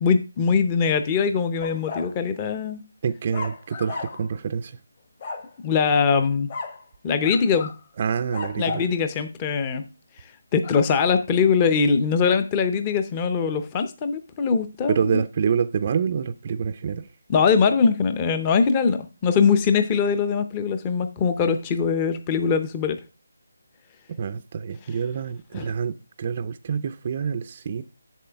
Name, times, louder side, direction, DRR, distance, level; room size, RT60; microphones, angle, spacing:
voice 1, 0.0-2.8 5.6-6.5 7.0-7.7 8.6-9.8 10.5-15.2 17.3-23.0 25.5-25.6, left 5 dB, 15° left, 0.5 m, -22 dB
sound 1, 1.6-2.1 3.3-4.4 5.2-5.5 6.5-6.8 7.2-7.8 8.3-8.9 10.6-11.1, left 4 dB, 35° left, 1.0 m, -35 dB
voice 2, 3.0-4.8 8.0-8.8 14.9-17.1 24.2-27.8, right 6 dB, 30° right, 0.4 m, -27 dB
7.5 x 7.3 x 3.4 m
figure-of-eight pair, 170°, 0 cm